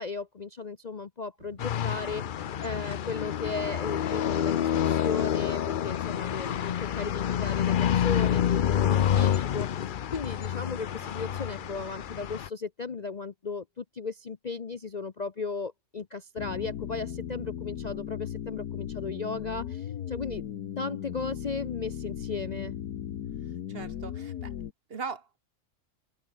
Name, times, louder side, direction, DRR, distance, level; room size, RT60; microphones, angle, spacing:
voice 1, 0.0-20.4 20.8-22.7, left 4 dB, 40° left, 0.7 m, -36 dB
sound 1, 1.4-12.3, right 4 dB, 85° right, 3.2 m, -53 dB
sound 2, 1.6-12.5, left 9 dB, 70° left, 0.5 m, -28 dB
sound 3, 16.4-24.7, left 10 dB, 85° left, 1.6 m, -37 dB
voice 2, 23.7-24.5 24.9-25.4, right 5 dB, 45° right, 1.2 m, -39 dB
open air
omnidirectional pair, 1.6 m